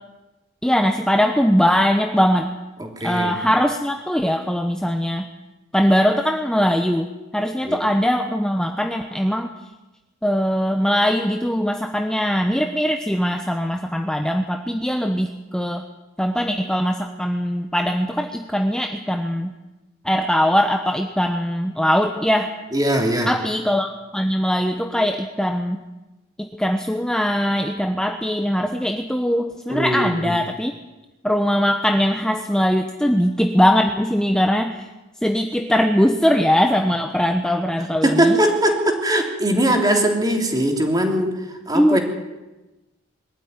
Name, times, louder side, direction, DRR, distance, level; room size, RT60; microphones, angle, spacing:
voice 1, 0.6-2.5 3.0-5.3 5.7-7.1 7.3-9.5 10.2-15.8 16.2-19.5 20.0-22.5 23.3-25.8 26.4-30.7 31.2-34.8 35.2-38.4 41.7-42.0, equal, 5° left, 4 dB, 0.9 m, -21 dB
voice 2, 2.8-3.3 7.6-7.8 22.7-23.3 29.7-30.3 38.0-41.4 41.7-42.0, right 1 dB, 20° right, 2 dB, 3.4 m, -20 dB
22.5 x 13.0 x 9.6 m, 1.1 s
head